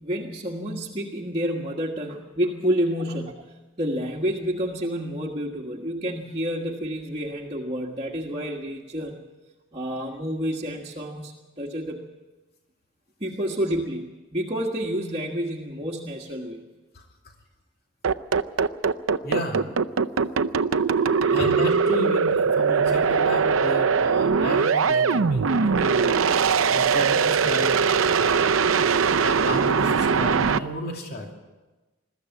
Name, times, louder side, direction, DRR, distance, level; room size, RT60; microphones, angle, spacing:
voice 1, 0.0-9.2 9.7-12.0 13.2-16.6 21.2-21.3 26.7-26.8, equal, 30° right, -2 dB, 1.5 m, -29 dB
sound 1, 18.0-30.6, right 5 dB, 90° right, 0.6 m, -21 dB
voice 2, 19.2-19.6 21.1-26.2 26.7-28.5 29.2-31.3, equal, 50° left, 1 dB, 2.7 m, -32 dB
21.5 x 14.0 x 9.2 m, 1.2 s
head